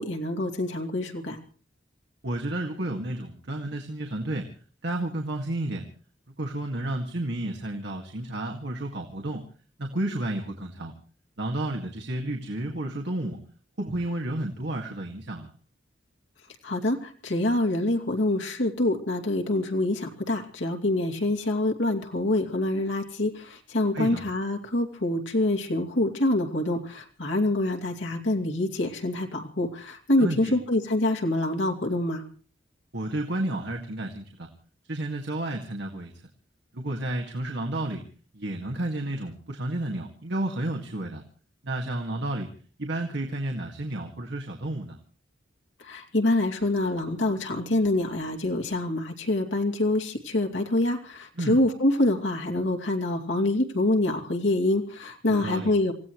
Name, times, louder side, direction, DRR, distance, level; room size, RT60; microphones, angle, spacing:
voice 1, 0.0-1.4 16.6-32.2 45.8-55.9, left 1 dB, 80° left, 2 dB, 2.6 m, -26 dB
voice 2, 2.2-4.5 4.8-5.8 6.4-9.4 9.8-10.9 11.4-13.4 13.8-15.5 23.9-24.2 30.2-30.5 32.9-34.5 34.9-36.1 36.7-38.0 38.3-41.2 41.6-42.5 42.8-45.0 51.4-51.6 55.3-55.7, right 1 dB, 65° right, 1 dB, 2.0 m, -31 dB
27.0 x 16.5 x 3.1 m, 0.40 s
head